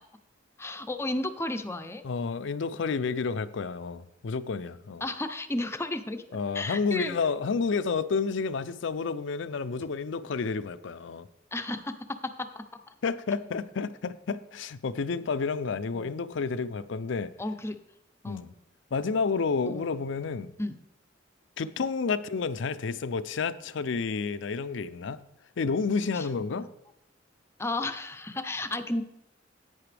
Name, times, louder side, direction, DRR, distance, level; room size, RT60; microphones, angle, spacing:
voice 1, 0.6-2.0 5.0-7.1 11.5-12.7 15.9-16.2 17.4-17.8 18.2-18.5 19.7-19.9 20.6-20.8 26.1-26.6 27.6-29.0, left 2 dB, 15° left, 8 dB, 0.6 m, -33 dB
voice 2, 2.0-5.0 6.3-11.3 13.0-17.3 18.2-18.5 18.9-20.5 21.6-25.2 25.6-26.7, left 4 dB, 65° left, 13 dB, 0.5 m, -30 dB
10.5 x 9.0 x 3.4 m, 0.83 s
head